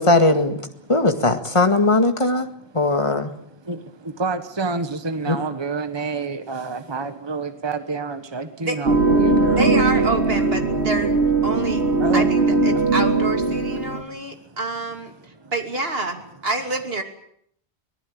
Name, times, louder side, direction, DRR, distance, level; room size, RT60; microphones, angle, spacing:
voice 1, 0.0-2.5 2.7-3.3 5.3-5.4, left 2 dB, 30° left, 7 dB, 2.1 m, -19 dB
voice 2, 3.6-10.4 12.0-12.3 14.0-14.6 15.4-15.5, right 4 dB, 25° right, 10 dB, 1.4 m, -29 dB
sound 1, 8.8-14.0, right 3 dB, 85° right, 2.7 m, -19 dB
voice 3, 9.5-11.1 11.4-11.8 12.1-17.0, right 2 dB, 60° right, 5 dB, 3.2 m, -28 dB
24.5 x 19.0 x 8.8 m, 0.69 s
omnidirectional pair, 1.1 m